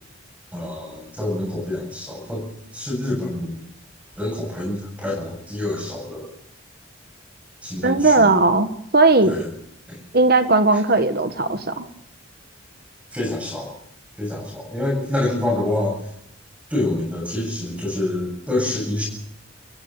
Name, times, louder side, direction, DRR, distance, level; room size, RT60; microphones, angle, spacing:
voice 1, 0.5-2.5 2.7-3.6 4.2-6.3 7.6-8.3 9.2-9.5 9.9-10.0 13.1-13.7 14.2-16.0 16.7-19.0, left 1 dB, 5° right, 0 dB, 7.7 m, -26 dB
voice 2, 7.8-8.7 8.9-9.3 10.1-11.9, right 3 dB, 50° right, 9 dB, 1.4 m, -17 dB
25.0 x 15.0 x 7.0 m, 0.75 s
head